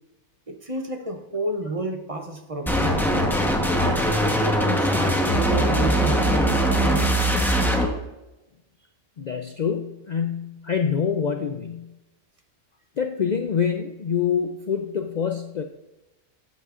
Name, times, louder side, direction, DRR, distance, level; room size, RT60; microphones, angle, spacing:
voice 1, 0.5-3.1 3.8-7.2, right 2 dB, 30° right, 4 dB, 0.7 m, -31 dB
sound 1, 2.7-7.8, equal, ahead, 0.9 m, -21 dB
voice 2, 9.2-11.9 13.0-15.6, left 7 dB, 85° left, 5 dB, 0.3 m, -26 dB
12.0 x 8.3 x 2.5 m, 0.98 s
omnidirectional pair, 1.4 m